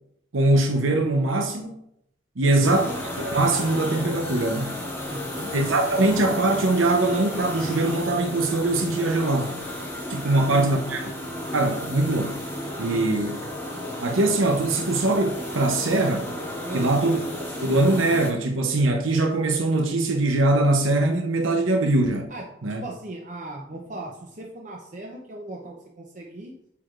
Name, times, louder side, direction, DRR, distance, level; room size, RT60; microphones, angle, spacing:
voice 1, 0.3-1.8 2.4-2.9 3.2-4.8 5.5-9.6 10.1-11.1 11.5-12.4 12.8-13.4 14.0-16.3 16.7-17.2 17.6-22.3 22.6-22.8, right 2 dB, 85° right, 0.8 m, -22 dB
sound 1, 2.6-18.3, left 1 dB, 10° left, 1.2 m, -33 dB
voice 2, 5.1-5.5 10.2-11.1 12.8-13.3 16.6-16.9 22.3-22.4 22.8-26.5, right 1 dB, 40° right, 0.7 m, -38 dB
8.4 x 4.7 x 2.5 m
head